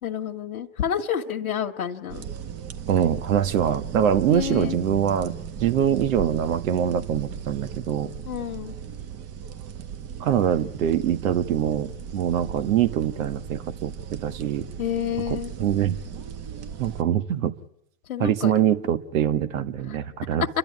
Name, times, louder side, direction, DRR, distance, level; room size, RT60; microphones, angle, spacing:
voice 1, 0.0-2.2 4.3-4.8 8.2-8.7 14.8-15.5 18.1-18.5 19.9-20.0, left 9 dB, 85° left, 2 dB, 1.7 m, -29 dB
sound 1, 2.1-17.0, right 8 dB, 35° right, 1.9 m, -37 dB
voice 2, 2.9-8.1 10.2-14.7 15.3-16.0 16.8-17.6 18.2-20.5, right 9 dB, 70° right, 11 dB, 1.6 m, -24 dB
29.5 x 12.0 x 9.7 m, 0.77 s
hypercardioid pair, 115°, 42 cm